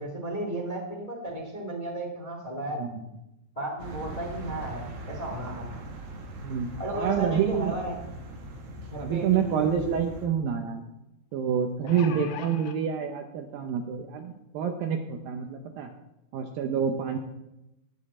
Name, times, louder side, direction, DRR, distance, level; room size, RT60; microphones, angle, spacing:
voice 1, 0.0-2.8 3.5-4.8 5.1-5.7 6.8-7.9 8.9-9.9 12.0-12.2, right 1 dB, 30° left, 0 dB, 0.6 m, -34 dB
sound 1, 3.8-10.3, right 1 dB, 55° right, 1.6 m, -40 dB
voice 2, 6.4-7.8 9.0-10.8 11.3-15.9 16.3-17.2, right 7 dB, 80° right, 5 dB, 2.1 m, -28 dB
sound 2, 9.5-9.6 9.9-10.0 11.6-12.8 13.7-13.8 14.2-14.3, left 8 dB, 80° left, 3.2 m, -41 dB
19.0 x 7.3 x 4.3 m, 0.92 s
omnidirectional pair, 5.1 m